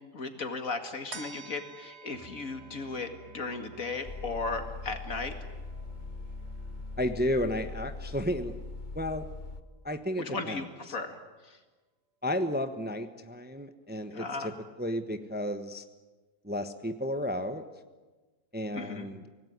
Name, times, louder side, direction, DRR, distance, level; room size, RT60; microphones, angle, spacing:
voice 1, 0.1-3.1 3.3-5.3 10.2-11.2 11.4-11.6 14.1-14.5 18.7-19.1, left 3 dB, 65° left, 6 dB, 2.5 m, -36 dB
sound 1, 1.1-7.9 8.3-8.4, right 4 dB, 45° right, 2.2 m, -52 dB
Musical instrument, 2.1-7.8, right 7 dB, 30° right, 2.2 m, -55 dB
sound 2, 4.0-9.6, left 3 dB, 40° left, 1.0 m, -41 dB
voice 2, 7.0-8.6 8.9-9.3 9.8-10.6 12.2-15.8 16.4-17.6 18.5-19.2, left 1 dB, 10° right, 8 dB, 0.9 m, -32 dB
25.0 x 18.5 x 9.6 m, 1.3 s
omnidirectional pair, 1.5 m